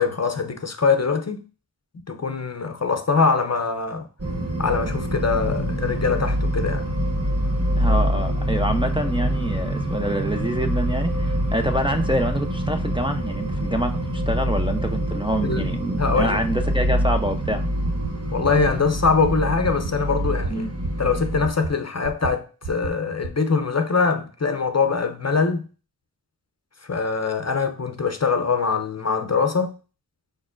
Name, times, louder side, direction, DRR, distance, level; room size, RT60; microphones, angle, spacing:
voice 1, 0.0-1.4 2.1-4.1 4.6-6.8 15.4-15.7 16.0-16.4 18.3-20.7 21.0-25.7 26.8-29.7, left 4 dB, 40° left, 0.6 m, -23 dB
sound 1, 4.2-21.5, equal, 35° right, 0.9 m, -25 dB
voice 2, 7.8-17.6 20.5-20.7, right 1 dB, 15° right, 0.5 m, -26 dB
sound 2, 17.2-17.5 17.8-18.1 18.4-18.7 19.0-19.3 19.6-19.9 20.2-20.5 20.8-21.1 21.4-21.7 22.0-22.3 22.6-22.9 23.2-23.3, right 4 dB, 85° right, 0.7 m, -31 dB
5.0 x 4.1 x 2.5 m
wide cardioid pair, 40°, 40 cm